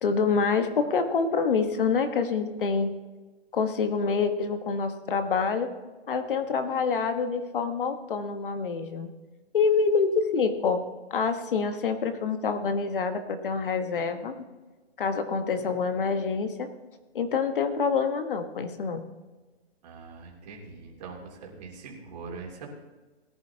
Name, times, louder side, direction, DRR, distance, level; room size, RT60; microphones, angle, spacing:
voice 1, 0.0-2.9 3.5-5.7 6.1-9.1 9.5-10.8 11.1-14.4 15.0-16.7 17.1-19.0, left 5 dB, 50° left, 8 dB, 1.4 m, -26 dB
voice 2, 19.8-22.7, right 4 dB, 40° right, -1 dB, 2.9 m, -42 dB
19.0 x 11.0 x 2.9 m, 1.2 s
hypercardioid pair, 155°, 33 cm